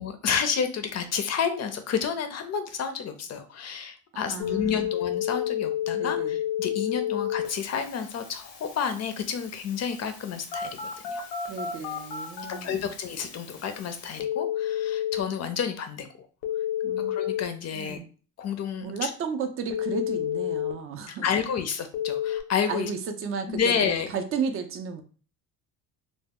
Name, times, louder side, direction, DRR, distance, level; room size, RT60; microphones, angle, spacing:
voice 1, 0.0-10.8 11.1-11.2 12.5-16.3 17.0-18.0 18.4-19.1 21.1-22.9 23.5-24.1, left 7 dB, 40° left, 8 dB, 0.5 m, -30 dB
voice 2, 4.3-4.9 5.9-6.4 11.5-12.9 16.8-17.1 17.7-18.1 18.8-21.3 22.7-25.0, right 5 dB, 35° right, 7 dB, 0.4 m, -33 dB
Telephone, 4.4-15.2 16.4-17.4 19.7-20.7 21.9-22.4, left 10 dB, 80° left, 0.7 m, -31 dB
2.0 x 2.0 x 3.5 m, 0.38 s
cardioid pair, 100°, 41 cm